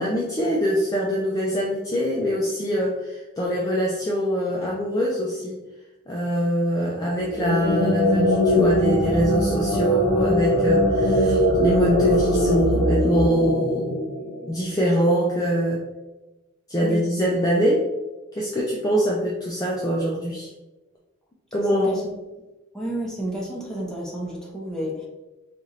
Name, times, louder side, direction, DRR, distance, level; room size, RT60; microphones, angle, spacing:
voice 1, 0.0-5.6 6.1-14.0 14.5-15.8 16.7-17.9 18.3-20.5 21.5-22.0, equal, 20° left, -4 dB, 0.4 m, -23 dB
sound 1, 7.2-14.6, left 1 dB, 70° left, 0.9 m, -21 dB
voice 2, 22.7-25.1, equal, 5° left, -4 dB, 0.8 m, -30 dB
4.2 x 2.4 x 3.1 m, 1.1 s
head